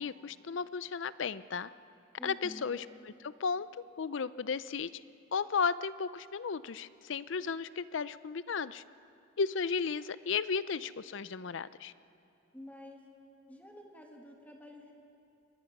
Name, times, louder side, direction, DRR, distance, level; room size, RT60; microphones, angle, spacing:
voice 1, 0.0-1.7 2.2-2.8 3.2-3.7 4.0-5.0 5.3-8.8 9.4-11.9, left 5 dB, 70° left, 16 dB, 0.5 m, -34 dB
voice 2, 2.2-2.7 12.5-13.0 13.5-14.9, equal, 10° left, 0 dB, 2.0 m, -49 dB
23.5 x 19.0 x 6.0 m, 2.6 s
head